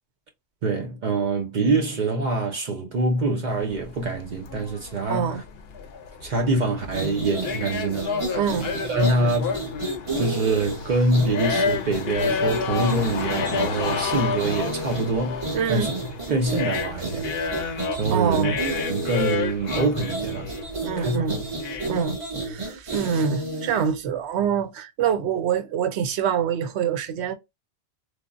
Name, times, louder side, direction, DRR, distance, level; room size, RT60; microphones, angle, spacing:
voice 1, 0.6-5.4 6.2-8.1 8.9-9.6 10.2-15.9 16.3-17.3 18.0-18.6 18.9-20.5 21.0-21.2, right 2 dB, 50° right, 0.6 m, -25 dB
sound 1, 3.5-22.0, left 6 dB, 70° left, 0.8 m, -31 dB
voice 2, 5.1-5.4 8.3-8.7 15.5-15.9 18.1-18.6 20.8-21.4 21.9-27.3, right 8 dB, 85° right, 0.8 m, -25 dB
sound 2, 6.8-23.9, right 2 dB, 30° right, 1.0 m, -32 dB
3.3 x 2.1 x 2.4 m
omnidirectional pair, 1.1 m